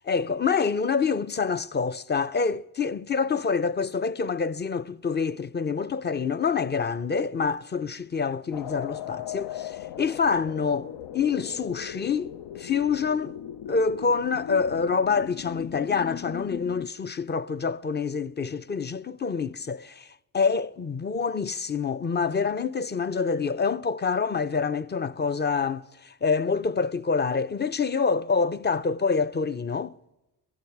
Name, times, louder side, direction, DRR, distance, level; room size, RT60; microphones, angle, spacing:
voice 1, 0.0-10.9 11.1-13.3 13.7-20.1 20.3-29.9, left 5 dB, 25° left, 0.5 m, -26 dB
sound 1, 8.5-16.9, left 10 dB, 80° left, 0.6 m, -38 dB
16.5 x 15.5 x 4.7 m
cardioid pair, 60°, 41 cm